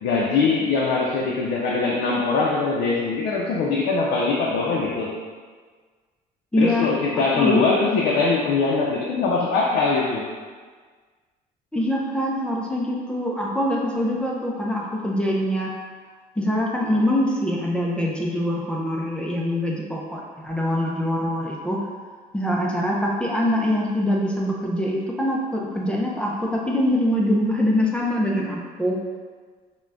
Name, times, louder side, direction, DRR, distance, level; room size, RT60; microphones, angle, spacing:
voice 1, 0.0-5.1 6.6-10.3, left 4 dB, 70° left, -3 dB, 0.4 m, -22 dB
voice 2, 6.5-7.6 11.7-15.7 16.4-21.8 22.3-29.0, left 1 dB, 5° left, -3 dB, 0.4 m, -24 dB
2.4 x 2.1 x 3.3 m, 1.5 s
cardioid pair, 110°, 17 cm